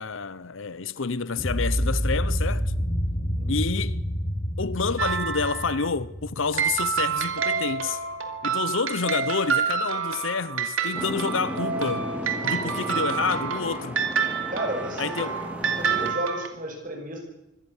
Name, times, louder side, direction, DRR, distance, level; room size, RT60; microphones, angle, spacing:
voice 1, 0.0-2.7 3.5-4.0 4.6-8.0 8.4-12.1 12.4-14.0 15.0-15.4, left 5 dB, 70° left, 0.7 m, -28 dB
sound 1, 1.3-7.4, equal, 30° left, 6.9 m, -28 dB
sound 2, 5.0-5.9 6.5-16.5, right 6 dB, 80° right, 2.9 m, -28 dB
Boat Water vehicle, 10.9-16.1, equal, 5° right, 2.7 m, -35 dB
voice 2, 14.5-15.4 15.8-17.2, right 1 dB, 40° right, 5.7 m, -33 dB
24.5 x 18.0 x 7.2 m
head